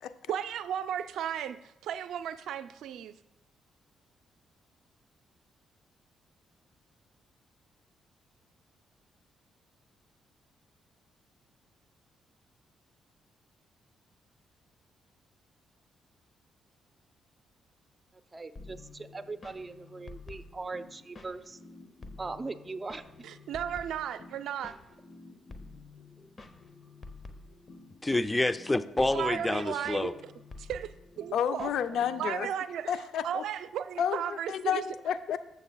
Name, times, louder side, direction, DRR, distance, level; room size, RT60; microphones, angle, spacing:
voice 1, 0.3-3.1 23.2-24.7 29.1-30.1 30.6-31.7 32.2-32.9 33.2-34.8, right 9 dB, 75° right, 12 dB, 0.4 m, -35 dB
voice 2, 18.3-21.6 22.2-23.0, right 3 dB, 30° right, 11 dB, 0.7 m, -40 dB
sound 1, 18.6-32.5, left 3 dB, 40° left, 0.9 m, -49 dB
voice 3, 28.0-30.1, left 2 dB, 20° left, 12 dB, 0.5 m, -28 dB
voice 4, 31.3-32.5 32.9-33.4 34.0-35.4, left 8 dB, 70° left, 12 dB, 0.4 m, -30 dB
15.5 x 6.6 x 2.3 m, 0.89 s
hypercardioid pair, 50°, 0 cm